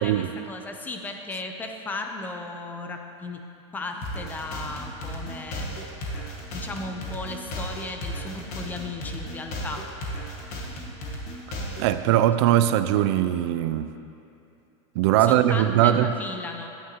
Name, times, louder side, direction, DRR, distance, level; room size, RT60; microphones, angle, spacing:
voice 1, 0.0-3.5 3.7-5.9 6.5-9.9 12.0-12.2 15.2-16.7, left 2 dB, 10° left, 4 dB, 0.5 m, -36 dB
sound 1, 4.0-12.0, equal, 45° left, 1.3 m, -35 dB
voice 2, 11.8-13.9 15.0-16.1, right 12 dB, 60° right, 11 dB, 0.4 m, -20 dB
9.3 x 9.2 x 2.9 m, 2.7 s
supercardioid pair, 155°, 16 cm